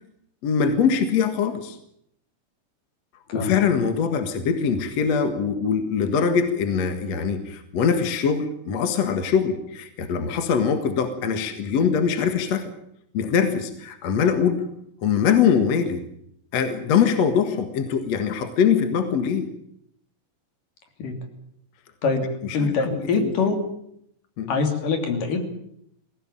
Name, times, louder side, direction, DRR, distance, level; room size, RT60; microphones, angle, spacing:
voice 1, 0.4-1.8 3.3-12.7 13.1-14.6 15.0-16.0 16.5-19.5 22.4-23.3 24.4-24.5, left 6 dB, 55° left, 8 dB, 2.6 m, -22 dB
voice 2, 22.5-23.6 24.5-25.4, left 4 dB, 70° left, 5 dB, 4.7 m, -23 dB
20.5 x 17.0 x 8.9 m, 0.73 s
omnidirectional pair, 3.9 m